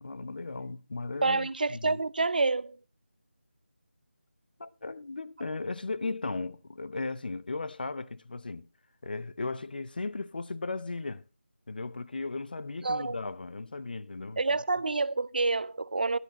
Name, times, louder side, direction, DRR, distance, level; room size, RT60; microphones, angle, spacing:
voice 1, 0.0-2.0 4.6-8.7 9.0-11.2 11.7-14.4, left 3 dB, 45° left, 0.7 m, -36 dB
voice 2, 1.2-2.8 12.8-13.1 14.4-16.2, right 3 dB, 45° right, 0.5 m, -28 dB
16.5 x 11.0 x 2.9 m
figure-of-eight pair, 170°, 7 cm